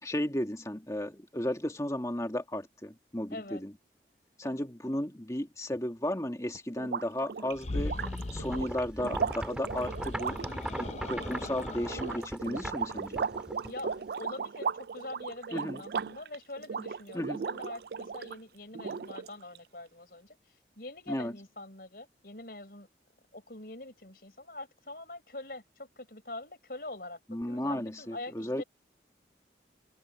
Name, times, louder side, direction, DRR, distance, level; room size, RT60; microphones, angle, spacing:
voice 1, 0.0-3.7 4.4-8.0 8.3-10.4 10.8-13.2 15.5-15.8 17.1-17.5 21.1-21.4 27.3-28.6, left 1 dB, 20° left, 2.0 m, -34 dB
voice 2, 3.3-3.6 4.4-4.7 10.6-11.1 13.6-20.4 20.8-22.9 23.3-27.2 27.5-28.6, left 2 dB, 55° left, 5.7 m, -44 dB
sound 1, 6.8-18.4 18.7-19.6, right 6 dB, 60° right, 0.4 m, -37 dB
sound 2, 7.5-8.8 9.6-12.2, left 2 dB, 40° left, 0.6 m, -39 dB
sound 3, 8.0-14.1, equal, 5° right, 2.4 m, -39 dB
head